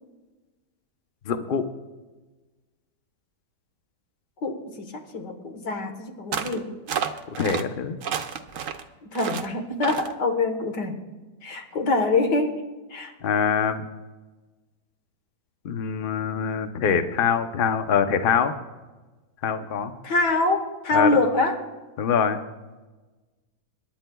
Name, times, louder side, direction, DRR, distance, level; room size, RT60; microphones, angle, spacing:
voice 1, 1.3-1.7 7.4-8.0 13.2-13.8 15.6-18.5 19.4-19.9 20.9-21.2 22.0-22.4, left 7 dB, 50° left, 8 dB, 0.6 m, -24 dB
voice 2, 4.4-6.7 9.0-11.0 11.4-12.6 12.9-13.1 20.0-21.6, left 3 dB, 85° left, 5 dB, 1.9 m, -25 dB
sound 1, 6.3-6.6 6.9-7.6 8.0-8.8 9.1-9.5 9.8-10.1, right 8 dB, 60° right, 1.0 m, -30 dB
26.5 x 11.0 x 2.3 m, 1.2 s
omnidirectional pair, 1.8 m